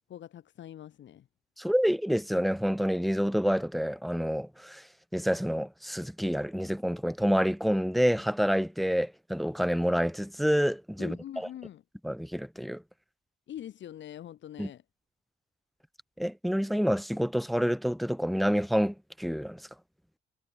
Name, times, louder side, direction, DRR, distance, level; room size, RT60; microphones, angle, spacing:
voice 1, 0.1-1.3 11.0-11.8 13.5-14.8, left 11 dB, 70° left, 3.3 m, -43 dB
voice 2, 1.6-4.8 5.1-11.5 12.0-12.8 14.6-14.7 16.2-19.6, equal, ahead, 1.1 m, -28 dB
cardioid pair, 90°, 20 cm